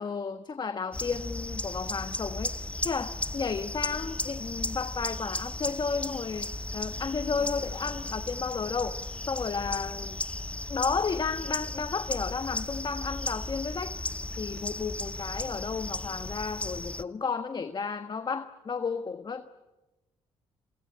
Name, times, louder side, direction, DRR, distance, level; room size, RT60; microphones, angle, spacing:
voice 1, 0.0-9.0 9.3-10.2 10.7-14.0 14.4-19.5, left 5 dB, 40° left, 9 dB, 1.3 m, -33 dB
sound 1, 0.9-17.0, left 2 dB, 10° left, 0.8 m, -35 dB
27.5 x 23.0 x 8.6 m, 1.1 s
supercardioid pair, 70°, 12 cm